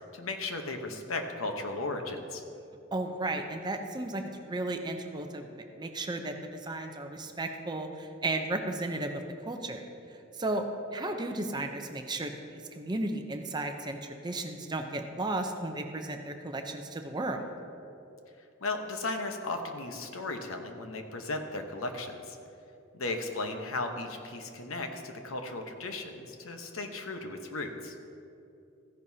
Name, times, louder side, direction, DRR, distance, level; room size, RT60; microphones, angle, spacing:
voice 1, 0.1-2.4 18.6-22.4 22.9-27.9, left 2 dB, 80° left, 5 dB, 1.0 m, -36 dB
voice 2, 2.9-9.9 10.3-10.6 10.9-17.5, right 2 dB, 20° right, 5 dB, 0.6 m, -34 dB
14.5 x 10.5 x 2.8 m, 2.7 s
head